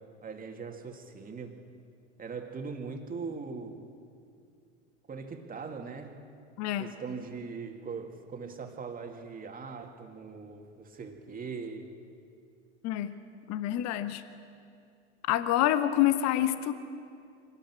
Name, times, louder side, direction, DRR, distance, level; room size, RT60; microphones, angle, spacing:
voice 1, 0.2-1.6 2.2-3.9 5.1-6.2 6.8-12.0, right 5 dB, 25° right, 3 dB, 2.6 m, -40 dB
voice 2, 6.6-6.9 12.8-13.1 13.5-14.2 15.3-16.7, left 12 dB, 45° left, 10 dB, 1.4 m, -27 dB
24.5 x 19.5 x 6.3 m, 2.5 s
hypercardioid pair, 90°, 36 cm